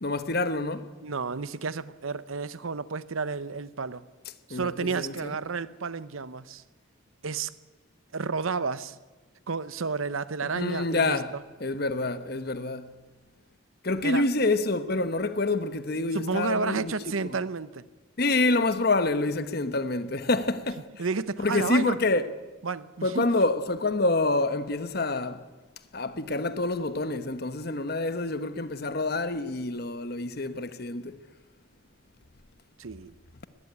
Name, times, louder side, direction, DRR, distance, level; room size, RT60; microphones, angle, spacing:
voice 1, 0.0-0.9 4.5-5.3 10.4-11.3 11.6-12.9 13.8-16.9 17.2-17.4 18.2-20.9 21.4-22.2 23.0-25.4 25.9-31.2, left 2 dB, 50° left, 1.1 m, -27 dB
voice 2, 1.0-4.0 4.5-6.6 7.2-7.5 8.1-9.0 9.5-11.4 14.0-14.3 16.1-17.8 21.0-22.0 22.6-23.2 32.8-33.1, right 4 dB, 80° right, 0.8 m, -31 dB
20.5 x 15.0 x 9.8 m
head